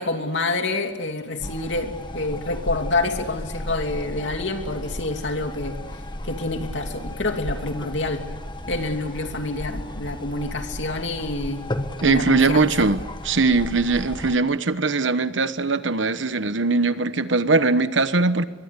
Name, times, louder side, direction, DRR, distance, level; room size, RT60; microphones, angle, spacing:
voice 1, 0.0-5.8 6.2-8.2 8.7-11.6 12.0-12.9, left 2 dB, 75° left, 5 dB, 2.8 m, -27 dB
sound 1, 1.4-14.4, left 1 dB, 25° left, 1.5 m, -34 dB
voice 2, 12.0-13.0 13.2-18.4, right 3 dB, 80° right, 12 dB, 1.2 m, -20 dB
24.0 x 22.0 x 8.4 m, 1.3 s
head